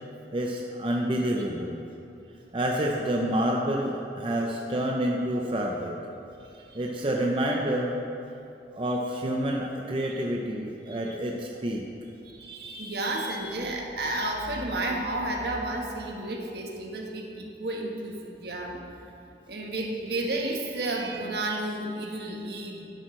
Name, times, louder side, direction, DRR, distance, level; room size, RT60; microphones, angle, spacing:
voice 1, 0.3-1.8 2.5-5.9 6.7-7.9 8.7-11.8, right 1 dB, 30° right, 0 dB, 0.6 m, -28 dB
voice 2, 12.2-18.8 19.5-22.8, right 2 dB, 65° right, 0 dB, 1.3 m, -32 dB
11.5 x 10.5 x 3.2 m, 2.7 s
head